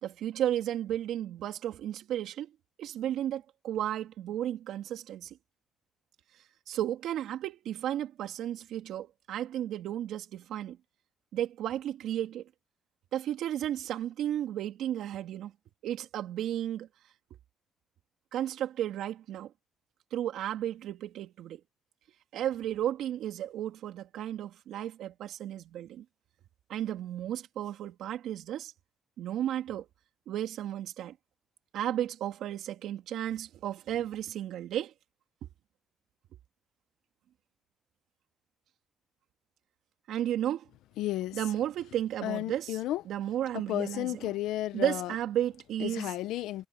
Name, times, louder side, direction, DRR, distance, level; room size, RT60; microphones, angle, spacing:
voice 1, 0.0-2.5 2.8-5.4 6.7-10.8 11.3-12.5 13.1-15.5 15.8-16.9 18.3-19.5 20.1-21.6 22.3-26.0 26.7-28.7 29.2-29.9 30.3-31.1 31.7-34.9 40.1-40.7 41.3-42.8 43.0-44.3 44.7-46.1, right 11 dB, 80° right, 2.9 m, -33 dB
voice 2, 41.0-41.4 42.2-43.0 43.7-45.1 45.8-46.7, left 14 dB, 90° left, 1.0 m, -33 dB
cardioid pair, 90°, 0 cm